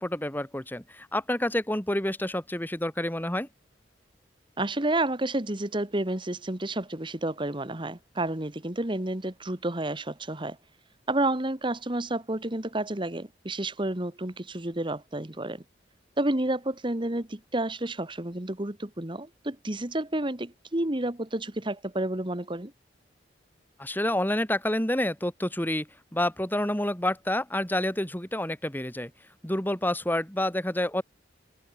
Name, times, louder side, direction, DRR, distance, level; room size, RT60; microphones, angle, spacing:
voice 1, 0.0-3.5 23.8-25.9 26.1-29.1 29.4-31.0, left 1 dB, 10° left, 2.8 m, -28 dB
voice 2, 4.6-10.6 11.1-15.6 16.2-22.7, right 1 dB, 25° right, 1.6 m, -30 dB
head